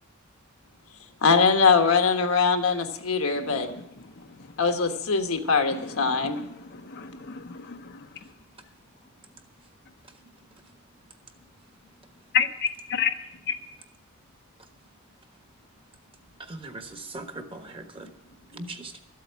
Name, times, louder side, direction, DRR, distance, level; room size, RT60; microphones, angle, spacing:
voice 1, 1.2-3.7 4.6-6.4, left 5 dB, 80° left, 6 dB, 1.3 m, -22 dB
voice 2, 6.1-6.5 6.7-7.9 12.3-13.2 13.5-13.6, left 8 dB, 55° left, 6 dB, 0.7 m, -29 dB
voice 3, 16.4-18.1 18.5-19.0, right 2 dB, 25° right, 6 dB, 1.3 m, -40 dB
13.0 x 8.1 x 8.2 m, 0.82 s
head